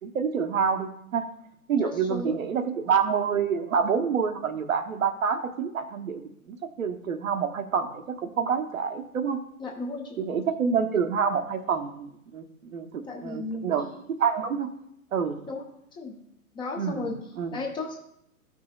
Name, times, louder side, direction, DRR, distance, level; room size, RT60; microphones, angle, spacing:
voice 1, 0.0-1.2 1.7-6.2 6.5-9.4 10.2-12.4 12.7-13.9 14.2-14.8 15.1-15.4 16.8-17.6, right 6 dB, 60° right, 8 dB, 1.1 m, -27 dB
voice 2, 1.8-2.4 9.6-10.2 13.0-14.1 15.5-15.6 15.9-16.2 16.5-17.2 17.5-18.0, left 3 dB, 10° left, 1 dB, 0.7 m, -34 dB
13.5 x 5.6 x 2.3 m, 0.74 s
figure-of-eight pair, 115°, 45 cm